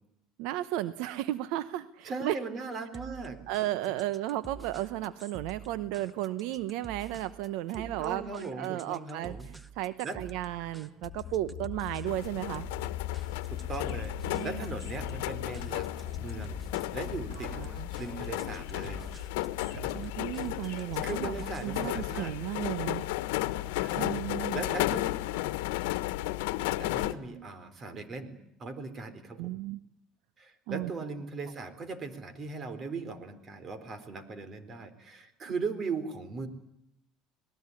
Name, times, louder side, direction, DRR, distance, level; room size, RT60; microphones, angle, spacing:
voice 1, 0.4-2.4 3.5-9.4 9.7-12.6 14.3-14.7 17.4-17.9 19.9-23.0 24.0-24.7 29.4-29.8 30.7-30.9, right 14 dB, 75° right, 14 dB, 1.0 m, -34 dB
voice 2, 2.0-3.4 7.7-9.5 10.0-10.2 13.5-14.1 14.4-16.6 16.9-17.6 18.0-19.0 19.6-20.1 20.6-22.5 23.8-24.2 24.5-25.1 26.7-28.3 28.6-29.5 30.4-36.5, right 4 dB, 35° right, 12 dB, 4.1 m, -39 dB
sound 1, 2.9-22.0, right 5 dB, 10° right, 1.2 m, -48 dB
sound 2, 11.0-19.1, left 14 dB, 60° left, 1.8 m, -41 dB
sound 3, 12.1-27.1, left 17 dB, 90° left, 1.2 m, -34 dB
27.0 x 20.0 x 9.9 m, 0.81 s
supercardioid pair, 110°, 0 cm